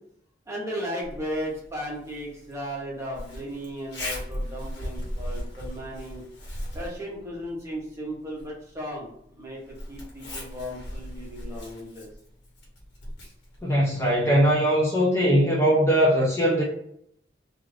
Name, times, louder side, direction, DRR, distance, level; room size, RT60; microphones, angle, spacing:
voice 1, 0.5-6.2 6.7-12.1, equal, 15° right, -4 dB, 0.9 m, -35 dB
Zipper (clothing), 1.0-14.6, equal, 70° left, 1.2 m, -39 dB
voice 2, 13.6-16.6, equal, 15° left, -4 dB, 0.6 m, -20 dB
2.6 x 2.5 x 3.2 m, 0.72 s
head